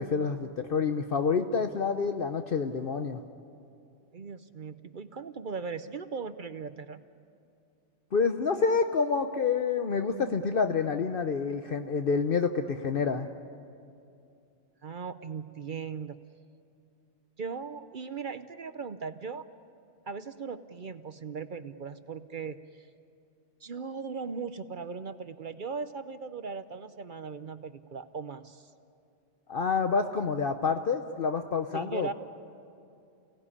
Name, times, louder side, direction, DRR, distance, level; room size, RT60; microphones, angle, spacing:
voice 1, 0.0-3.2 8.1-13.3 29.5-32.1, left 5 dB, 55° left, 7 dB, 1.0 m, -28 dB
voice 2, 4.1-7.0 14.8-16.2 17.4-19.5 20.1-22.9 23.6-28.7 31.7-32.1, right 5 dB, 50° right, 11 dB, 0.8 m, -38 dB
29.5 x 18.0 x 9.8 m, 2.6 s
omnidirectional pair, 1.2 m